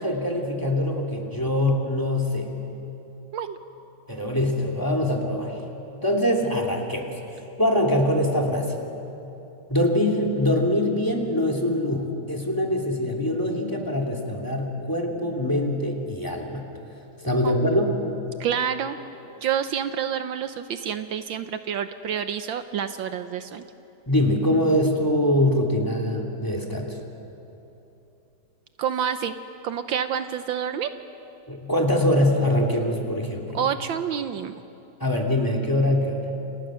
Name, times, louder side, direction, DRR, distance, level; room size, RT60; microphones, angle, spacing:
voice 1, 0.0-2.5 4.1-5.6 5.9-7.1 7.6-8.7 9.7-16.6 17.2-17.9 24.1-27.0 31.5-33.6 35.0-36.3, left 1 dB, 10° left, 0 dB, 2.8 m, -23 dB
voice 2, 17.4-17.8 18.4-19.0 19.4-23.6 28.8-29.4 29.6-30.9 33.5-34.6, right 8 dB, 75° right, 9 dB, 1.5 m, -28 dB
29.5 x 29.0 x 6.4 m, 2.9 s
omnidirectional pair, 2.2 m